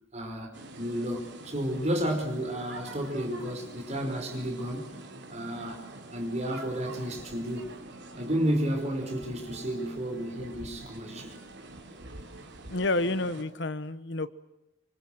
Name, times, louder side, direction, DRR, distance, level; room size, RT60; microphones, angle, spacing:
voice 1, 0.1-5.0 5.3-5.8 6.1-7.8 8.1-11.3, equal, 35° right, 4 dB, 4.9 m, -32 dB
sound 1, 0.5-13.4, right 2 dB, 60° right, 3.4 m, -46 dB
voice 2, 12.7-14.3, left 2 dB, 60° left, 14 dB, 1.1 m, -29 dB
25.0 x 25.0 x 7.8 m, 0.95 s
head